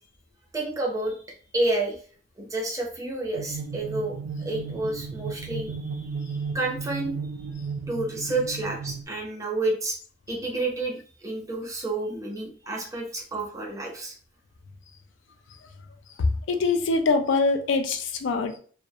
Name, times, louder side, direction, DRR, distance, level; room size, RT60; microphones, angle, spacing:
voice 1, 0.5-1.2 1.5-2.0 2.4-7.5 7.9-10.0 10.3-14.1, right 2 dB, 15° right, -1 dB, 0.5 m, -30 dB
sound 1, 3.3-9.0, right 5 dB, 85° right, 0.3 m, -34 dB
voice 2, 16.2-18.6, left 3 dB, 75° left, 6 dB, 0.4 m, -24 dB
2.3 x 2.0 x 2.7 m, 0.43 s
head